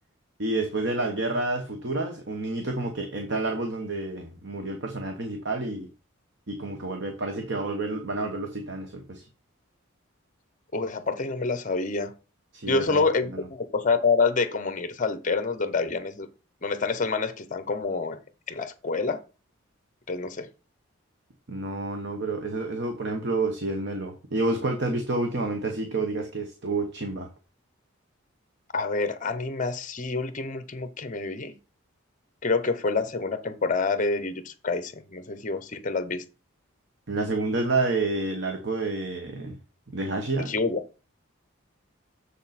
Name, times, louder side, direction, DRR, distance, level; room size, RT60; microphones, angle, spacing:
voice 1, 0.4-5.9 6.5-9.2 12.5-13.0 13.3-13.5 21.5-27.3 37.1-39.6 39.9-40.5, right 2 dB, 55° right, 1.2 m, -29 dB
voice 2, 10.7-12.1 12.7-16.3 16.6-18.2 18.5-19.2 20.1-20.5 28.7-31.5 32.4-36.2 40.5-40.8, left 4 dB, 35° left, 0.9 m, -27 dB
7.2 x 6.6 x 4.2 m
head